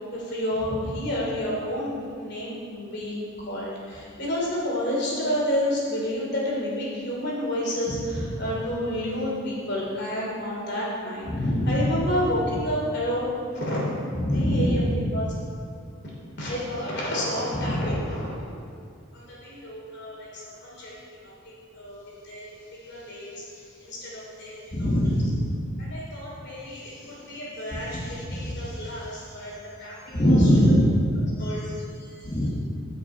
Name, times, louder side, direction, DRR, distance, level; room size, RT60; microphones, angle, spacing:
voice 1, 0.1-13.8 14.3-15.3 16.4-18.4 19.1-25.2 25.8-30.6 31.4-32.1, equal, 55° left, -4 dB, 2.9 m, -30 dB
voice 2, 11.3-11.8 14.2-15.0 17.6-17.9 24.7-25.5 27.9-28.4 30.1-31.0 32.2-32.5, equal, 30° left, -8 dB, 1.4 m, -22 dB
14.0 x 6.0 x 4.4 m, 2.3 s
head